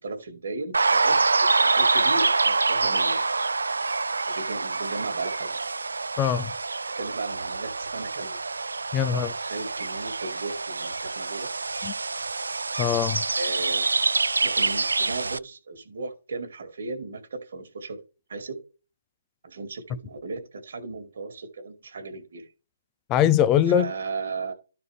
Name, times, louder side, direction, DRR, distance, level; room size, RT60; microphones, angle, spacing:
voice 1, 0.0-3.3 4.3-5.6 7.0-8.4 9.1-11.5 13.4-13.9 14.4-18.0 18.3-18.6 19.4-22.5 23.7-24.5, right 3 dB, 65° right, 2.1 m, -36 dB
sound 1, 0.7-15.4, right 3 dB, 80° right, 0.3 m, -26 dB
voice 2, 6.2-6.5 8.9-9.3 11.8-11.9 12.8-13.3 23.1-23.9, left 10 dB, 20° left, 0.6 m, -22 dB
12.5 x 4.3 x 3.4 m
figure-of-eight pair, 145°, 0 cm